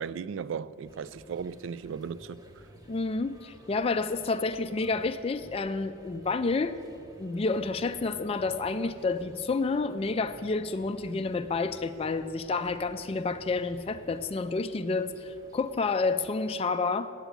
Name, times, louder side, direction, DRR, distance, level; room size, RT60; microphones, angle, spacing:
voice 1, 0.0-2.4, right 6 dB, 65° right, 0.3 m, -36 dB
sound 1, 0.8-16.4, equal, 20° right, 0.7 m, -54 dB
voice 2, 2.9-6.8 7.2-17.1, left 3 dB, 30° left, 0.3 m, -29 dB
8.9 x 8.1 x 8.2 m
head